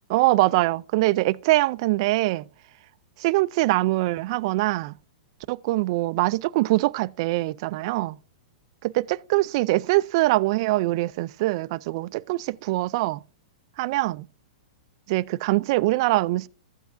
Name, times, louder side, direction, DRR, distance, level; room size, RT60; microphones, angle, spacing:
voice 1, 0.1-2.4 3.2-4.9 5.5-8.2 8.8-13.2 13.8-14.3 15.1-16.5, right 19 dB, 45° right, 0.3 m, -23 dB
13.5 x 8.0 x 2.6 m
hypercardioid pair, 145°, 4 cm